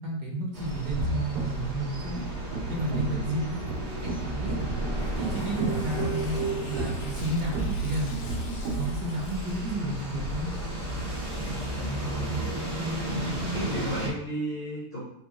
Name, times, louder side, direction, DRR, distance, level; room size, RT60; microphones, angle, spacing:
voice 1, 0.0-2.2 2.7-3.6 4.0-4.8 5.2-8.1 8.7-10.5, right 1 dB, 60° right, -2 dB, 1.3 m, -32 dB
sound 1, 0.5-14.1, right 1 dB, 35° right, 0.7 m, -33 dB
sound 2, 0.8-8.9, right 3 dB, 85° right, 1.3 m, -33 dB
voice 2, 2.7-3.2 11.9-12.5 13.0-15.0, equal, 45° left, -6 dB, 0.8 m, -35 dB
Tearing, 4.9-9.7, left 3 dB, 85° left, 1.4 m, -48 dB
4.0 x 2.1 x 3.6 m, 0.73 s
omnidirectional pair, 1.8 m